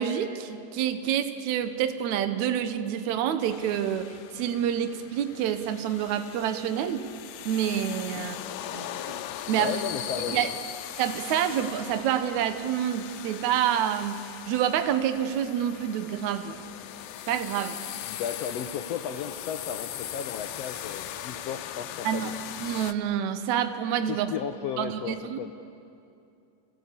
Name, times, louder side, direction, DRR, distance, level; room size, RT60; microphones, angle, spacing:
voice 1, 0.0-4.1 4.3-7.1 7.5-8.4 8.7-9.0 9.5-9.8 10.3-10.5 11.0-14.2 14.5-16.6 17.3-17.8 22.0-22.3 22.6-24.3 24.8-25.4, right 9 dB, 70° right, 9 dB, 2.3 m, -27 dB
sound 1, 3.4-22.9, left 12 dB, 90° left, 2.5 m, -39 dB
voice 2, 9.6-10.5 18.0-22.3 24.1-25.5, left 8 dB, 75° left, 6 dB, 1.5 m, -34 dB
29.0 x 18.0 x 8.4 m, 2.6 s
omnidirectional pair, 3.7 m